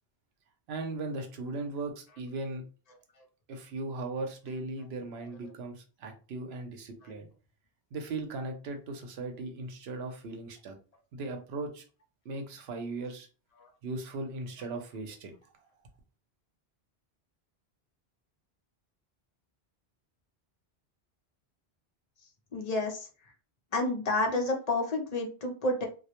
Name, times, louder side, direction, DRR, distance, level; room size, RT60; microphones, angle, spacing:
voice 1, 0.7-2.6 3.5-7.3 7.9-10.8 11.1-11.8 12.2-13.3 13.8-15.7, right 2 dB, 75° right, 5 dB, 0.8 m, -38 dB
voice 2, 22.5-23.1 23.7-25.9, left 2 dB, 50° left, 2 dB, 0.5 m, -29 dB
2.2 x 2.0 x 2.9 m, 0.35 s
omnidirectional pair, 1.1 m